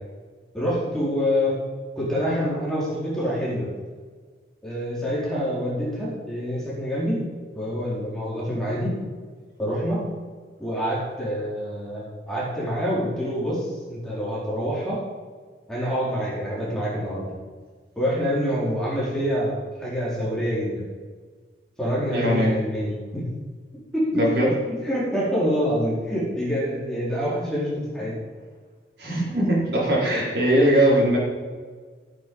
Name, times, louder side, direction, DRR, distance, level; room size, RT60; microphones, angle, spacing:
voice 1, 0.5-1.6 2.0-3.7 4.6-7.2 7.5-8.9 9.6-10.0 10.6-15.0 15.7-17.3 18.0-20.9 21.8-23.2 23.9-24.5 24.8-28.2, equal, 5° left, -8 dB, 4.4 m, -26 dB
voice 2, 22.1-22.5 24.1-24.5 29.0-31.2, right 1 dB, 70° right, -5 dB, 5.1 m, -20 dB
14.5 x 9.5 x 5.6 m, 1.5 s
head